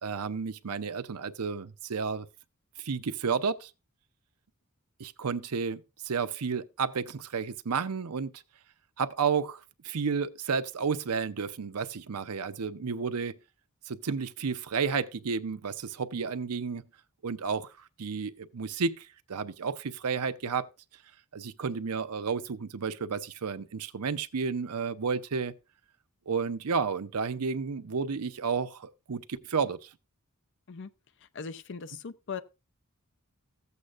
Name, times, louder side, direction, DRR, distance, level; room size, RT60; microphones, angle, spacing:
voice 1, 0.0-2.3 2.8-3.7 5.0-8.3 9.0-13.3 13.9-16.8 17.2-17.7 18.0-20.7 21.3-25.5 26.3-29.9, right 5 dB, 80° right, 0.6 m, -32 dB
voice 2, 31.2-32.4, left 5 dB, 55° left, 0.6 m, -39 dB
14.5 x 8.2 x 2.4 m
head